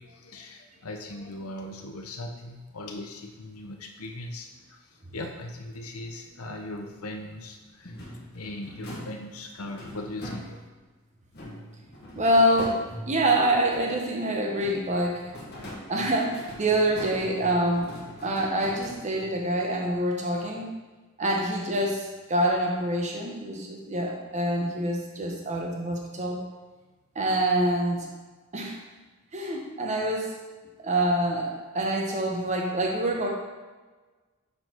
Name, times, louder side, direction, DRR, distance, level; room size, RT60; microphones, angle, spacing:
voice 1, 0.0-8.0 8.3-10.6, left 1 dB, 90° left, 3 dB, 0.8 m, -39 dB
sound 1, 7.8-10.9 11.3-14.1 14.5-19.4, equal, 50° left, 1.6 m, -42 dB
voice 2, 12.2-15.3 15.9-17.9 18.2-20.7 21.2-26.4 27.1-28.1 28.5-28.8 29.3-30.3 30.8-33.3, right 1 dB, 35° right, 0 dB, 1.0 m, -26 dB
6.9 x 4.0 x 4.5 m, 1.3 s
head